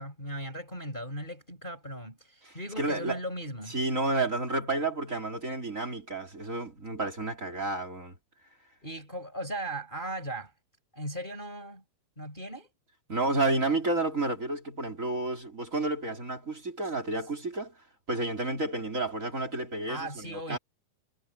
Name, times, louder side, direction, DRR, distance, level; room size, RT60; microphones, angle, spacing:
voice 1, 0.0-3.8 8.8-10.5 10.9-11.8 12.2-12.7 19.9-20.6, right 1 dB, 15° left, 4.8 m, -38 dB
voice 2, 2.4-3.2 3.7-8.2 13.1-17.8 18.1-20.6, right 2 dB, 25° right, 3.5 m, -31 dB
omnidirectional pair, 3.8 m